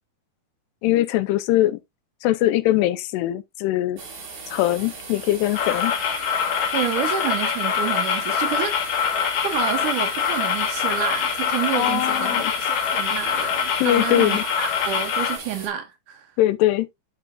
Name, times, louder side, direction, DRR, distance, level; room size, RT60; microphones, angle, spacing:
voice 1, 0.8-1.8 2.2-4.0 4.5-5.9 11.7-12.5 13.8-14.4 16.4-16.9, left 14 dB, 85° left, 2.8 m, -21 dB
sound 1, 4.0-15.7, right 4 dB, 50° right, 3.5 m, -38 dB
sound 2, 5.5-15.4, left 7 dB, 65° left, 2.7 m, -24 dB
voice 2, 6.7-9.0 9.4-16.3, right 9 dB, 75° right, 1.9 m, -29 dB
10.0 x 6.1 x 2.5 m
omnidirectional pair, 4.7 m